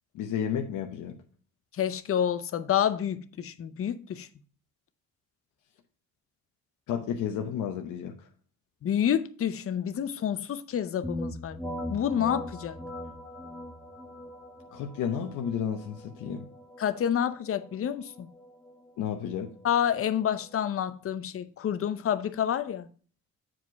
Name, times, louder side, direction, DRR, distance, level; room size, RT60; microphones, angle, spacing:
voice 1, 0.1-1.1 6.9-8.1 14.7-16.5 19.0-19.5, left 8 dB, 85° left, 0.9 m, -32 dB
voice 2, 1.7-4.3 8.8-11.6 11.9-12.8 16.8-18.3 19.6-22.9, left 9 dB, 50° left, 0.7 m, -28 dB
sound 1, 11.0-20.6, left 1 dB, ahead, 1.3 m, -41 dB
7.6 x 5.0 x 4.7 m
cardioid pair, 90°, 30 cm